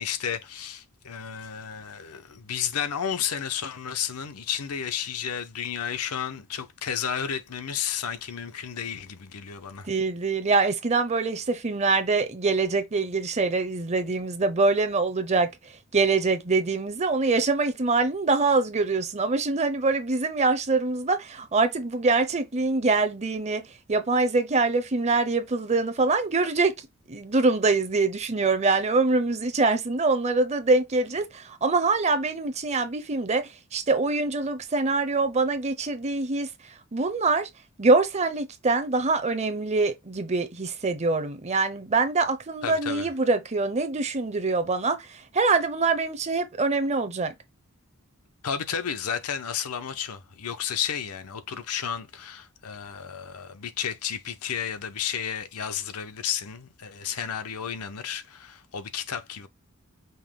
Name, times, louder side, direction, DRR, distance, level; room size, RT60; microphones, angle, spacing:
voice 1, 0.0-9.9 42.6-43.1 48.4-59.5, left 8 dB, 90° left, 0.7 m, -32 dB
voice 2, 9.9-15.5 15.9-26.7 27.1-36.5 36.9-37.5 37.8-47.3, right 3 dB, 30° right, 0.6 m, -24 dB
5.4 x 2.1 x 3.6 m
head